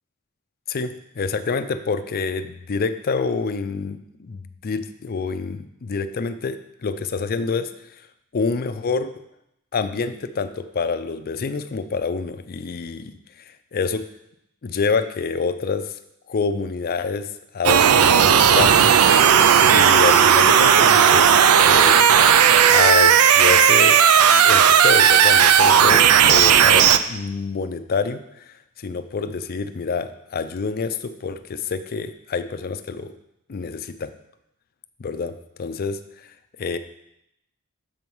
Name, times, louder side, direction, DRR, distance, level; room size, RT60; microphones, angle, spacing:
voice 1, 0.7-7.7 8.3-9.1 9.7-14.0 14.6-16.0 16.3-17.3 17.5-19.0 19.7-22.1 22.7-24.0 24.4-33.2 33.5-34.1 35.0-35.3 35.6-36.3 36.6-36.8, left 4 dB, 45° left, 10 dB, 0.4 m, -27 dB
sound 1, 17.6-27.0, right 8 dB, 80° right, 0.4 m, -14 dB
7.3 x 4.6 x 5.4 m, 0.82 s
head